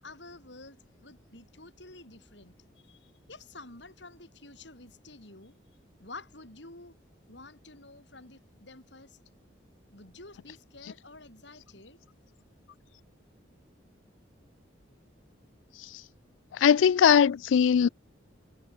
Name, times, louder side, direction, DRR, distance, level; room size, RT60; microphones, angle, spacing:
voice 1, 0.0-2.5 2.8-5.6 6.0-7.0 7.3-9.2 9.9-12.0, left 2 dB, 70° left, 7.3 m, -49 dB
voice 2, 16.5-17.9, left 7 dB, 85° left, 0.3 m, -20 dB
head